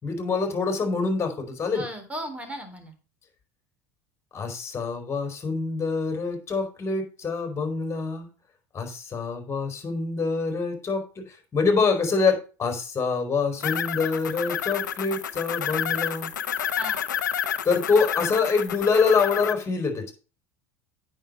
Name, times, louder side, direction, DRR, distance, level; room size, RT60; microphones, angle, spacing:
voice 1, 0.0-1.8 4.3-8.3 8.7-16.3 17.6-20.1, left 4 dB, 30° left, 5 dB, 4.2 m, -25 dB
voice 2, 1.7-2.9 16.8-17.0, equal, 15° right, 6 dB, 3.7 m, -36 dB
sound 1, 13.6-19.5, left 8 dB, 90° left, 0.7 m, -29 dB
9.1 x 6.5 x 5.2 m, 0.33 s
hypercardioid pair, 85°, 10 cm